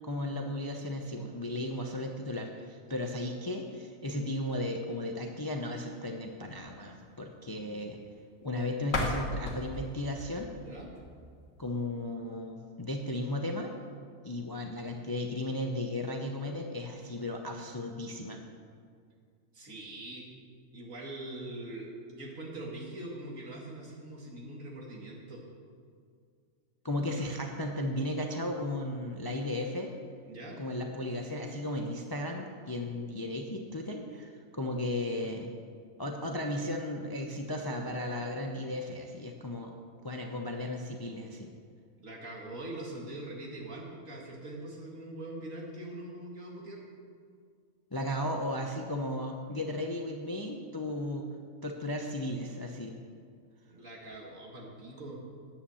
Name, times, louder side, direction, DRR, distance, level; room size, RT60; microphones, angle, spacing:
voice 1, 0.0-8.0 8.4-10.5 11.6-13.7 14.2-18.4 26.8-29.9 30.6-35.5 36.0-39.7 40.0-41.5 47.9-51.3 51.6-53.0, left 1 dB, 20° left, 3 dB, 0.6 m, -35 dB
sound 1, 8.8-11.7, left 1 dB, 60° left, 1.6 m, -36 dB
voice 2, 19.5-20.4 20.7-25.4 27.0-27.2 30.3-30.6 42.0-46.8 53.7-55.2, right 1 dB, 65° right, -2 dB, 2.5 m, -43 dB
10.0 x 8.8 x 7.0 m, 2.2 s
omnidirectional pair, 1.5 m